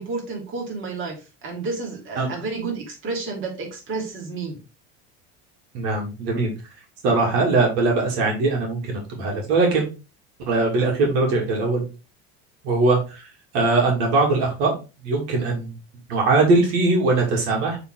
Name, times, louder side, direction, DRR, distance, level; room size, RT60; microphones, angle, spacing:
voice 1, 0.0-4.6, right 3 dB, 40° right, 0 dB, 2.9 m, -31 dB
voice 2, 5.7-6.5 7.0-9.8 10.5-11.8 12.6-13.0 13.5-14.7 15.0-15.7 16.1-17.8, right 3 dB, 75° right, 0 dB, 2.7 m, -20 dB
7.0 x 4.1 x 3.8 m, 0.30 s
supercardioid pair, 125°, 31 cm